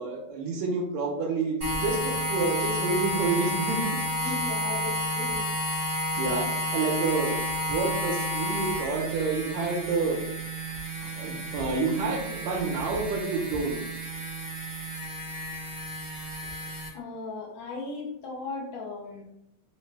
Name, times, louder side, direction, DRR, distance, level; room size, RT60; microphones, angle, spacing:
voice 1, 0.0-3.9 4.2-4.3 6.2-7.4 7.7-10.2 11.0-13.8, right 4 dB, 75° right, 0 dB, 1.8 m, -29 dB
sound 1, 1.6-16.9, equal, 60° right, 0.6 m, -31 dB
voice 2, 4.2-5.5 16.9-19.2, left 3 dB, 75° left, -2 dB, 1.8 m, -37 dB
4.8 x 2.1 x 3.2 m, 0.81 s
omnidirectional pair, 3.4 m